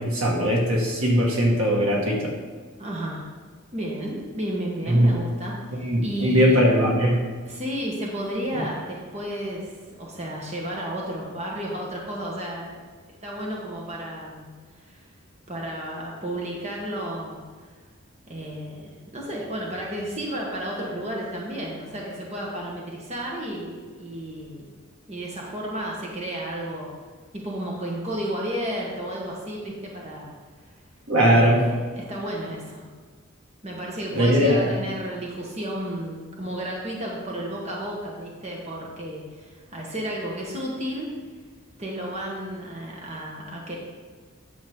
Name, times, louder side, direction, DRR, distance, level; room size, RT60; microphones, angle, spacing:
voice 1, 0.0-2.3 4.9-5.1 5.7-7.3 8.5-8.6 31.1-31.6 34.1-34.6, equal, 90° right, -2 dB, 2.0 m, -20 dB
voice 2, 2.8-3.2 3.7-6.5 7.5-9.7 10.0-12.8 13.2-14.5 14.8-15.1 15.5-17.4 18.3-24.7 25.1-26.9 27.3-30.3 31.3-32.8 33.6-41.1 41.8-43.8, right 1 dB, 30° right, -2 dB, 1.3 m, -32 dB
9.2 x 7.1 x 3.7 m, 1.5 s
head